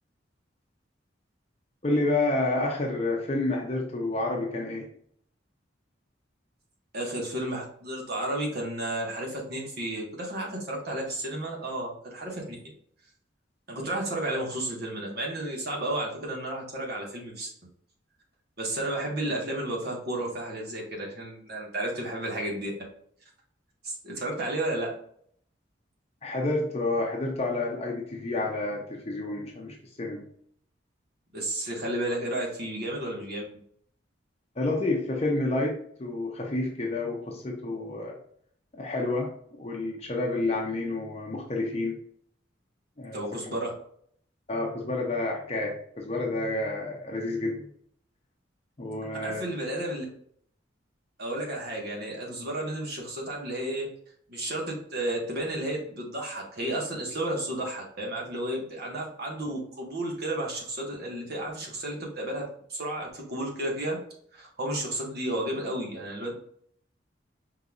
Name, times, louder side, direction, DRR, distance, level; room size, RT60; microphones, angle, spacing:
voice 1, 1.8-4.9 26.2-30.2 34.6-38.2 38.7-39.3 39.6-42.0 43.0-43.6 44.5-47.7 48.8-49.4, left 2 dB, 35° left, 0 dB, 0.7 m, -29 dB
voice 2, 6.9-12.7 13.7-17.5 18.6-22.7 23.8-24.9 31.3-33.4 43.1-43.7 49.2-50.0 51.2-53.9 54.3-64.0 64.3-66.3, right 1 dB, 55° right, -1 dB, 1.5 m, -32 dB
5.2 x 3.9 x 2.4 m, 0.64 s
head